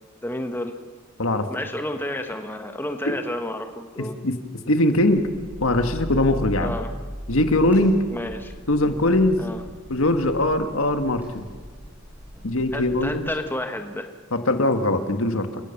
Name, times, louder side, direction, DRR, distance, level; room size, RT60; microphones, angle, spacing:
voice 1, 0.2-0.7 1.5-4.2 6.6-6.9 8.1-8.5 9.4-9.6 12.7-14.1, left 1 dB, 10° left, 6 dB, 1.1 m, -31 dB
voice 2, 4.0-4.4 4.6-5.3 5.6-6.8 7.3-8.0 8.7-9.5 9.9-11.5 12.4-13.3 14.3-15.5, left 1 dB, 75° left, 8 dB, 1.6 m, -21 dB
sound 1, 4.9-13.2, equal, 10° right, 7.3 m, -38 dB
29.5 x 16.0 x 7.1 m, 1.5 s
head